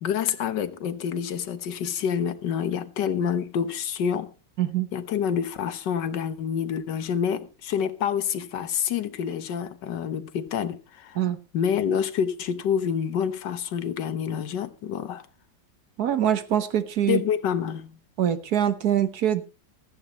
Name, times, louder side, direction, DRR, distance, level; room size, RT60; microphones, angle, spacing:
voice 1, 0.0-4.3 4.9-11.2 11.5-15.2 17.1-18.0, left 8 dB, 70° left, 1.6 m, -27 dB
voice 2, 16.0-17.2 18.2-19.4, right 10 dB, 60° right, 1.5 m, -24 dB
16.0 x 14.5 x 3.0 m
omnidirectional pair, 2.0 m